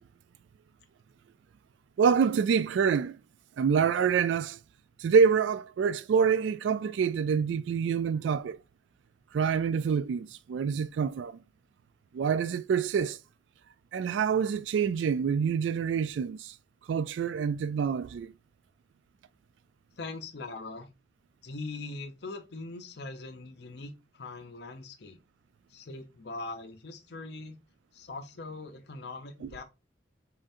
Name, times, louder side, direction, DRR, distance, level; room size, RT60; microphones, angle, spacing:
voice 1, 2.0-3.2 3.6-4.6 5.0-8.6 9.3-11.3 12.1-13.2 13.9-16.5 16.9-18.3, right 6 dB, 90° right, 0.3 m, -26 dB
voice 2, 20.0-20.9 21.4-25.2 25.7-27.6 27.9-29.6, left 3 dB, 65° left, 0.7 m, -41 dB
4.3 x 3.7 x 2.6 m
head